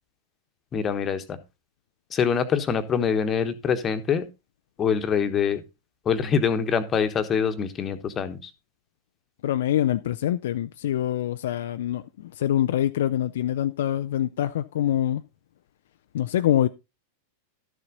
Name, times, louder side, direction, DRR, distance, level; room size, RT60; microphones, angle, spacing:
voice 1, 0.7-1.4 2.1-4.2 4.8-5.6 6.0-8.5, left 7 dB, 25° left, 1.2 m, -24 dB
voice 2, 9.4-15.2 16.1-16.7, left 11 dB, 60° left, 0.4 m, -25 dB
12.5 x 6.8 x 3.8 m
figure-of-eight pair, 90°, 0 cm